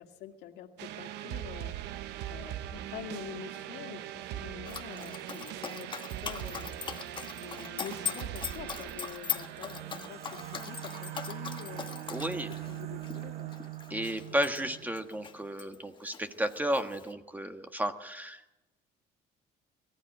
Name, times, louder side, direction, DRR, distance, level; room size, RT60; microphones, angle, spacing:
voice 1, 0.0-2.0 2.3-6.8 7.4-12.0 12.7-13.5 14.3-14.6, left 10 dB, 85° left, 4 dB, 2.1 m, -46 dB
sound 1, 0.8-15.5, right 13 dB, 85° right, 0.8 m, -41 dB
Dog, 4.6-15.8 16.1-17.1, left 7 dB, 30° left, 1.3 m, -40 dB
sound 2, 9.4-14.6, right 6 dB, 40° right, 1.3 m, -50 dB
voice 2, 12.1-12.5 13.9-18.4, equal, 10° right, 7 dB, 1.4 m, -33 dB
22.5 x 14.5 x 9.2 m, 1.0 s
cardioid pair, 110°, 17 cm